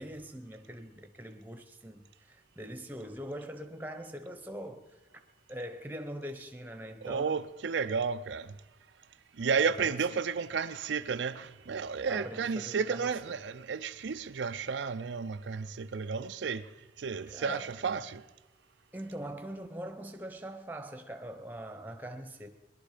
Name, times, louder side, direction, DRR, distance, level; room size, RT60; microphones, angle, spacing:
voice 1, 0.0-5.0 5.5-7.4 9.8-10.0 12.1-13.4 17.3-17.8 18.9-22.5, right 1 dB, 10° right, 0.9 m, -42 dB
voice 2, 7.0-8.5 9.4-16.7 17.0-18.2, right 5 dB, 80° right, 0.5 m, -32 dB
20.0 x 11.5 x 5.0 m
head